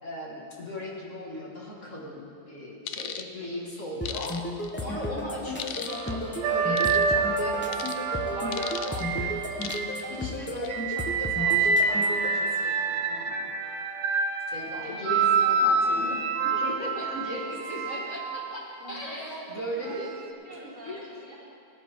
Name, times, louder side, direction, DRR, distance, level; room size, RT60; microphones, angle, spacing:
voice 1, 0.0-4.4 4.8-7.9 8.2-9.7 10.1-13.5 14.5-20.1 20.6-21.0, left 1 dB, 45° left, -4 dB, 2.1 m, -38 dB
sound 1, 2.9-3.2 4.0-4.7 5.6-6.1 6.8-7.0 7.7-8.0 8.5-9.0 9.6-10.0 10.5-10.7, left 9 dB, 65° left, 0.9 m, -36 dB
sound 2, 4.0-12.3, left 1 dB, 15° left, 0.4 m, -34 dB
sound 3, 5.9-10.2 10.7-18.8 19.8-20.1, right 4 dB, 90° right, 1.4 m, -27 dB
voice 2, 14.8-15.3 15.8-16.2 16.5-17.4 17.7-18.0 18.8-21.4, equal, 70° right, -8 dB, 3.7 m, -44 dB
18.0 x 10.0 x 3.6 m, 2.7 s
omnidirectional pair, 1.9 m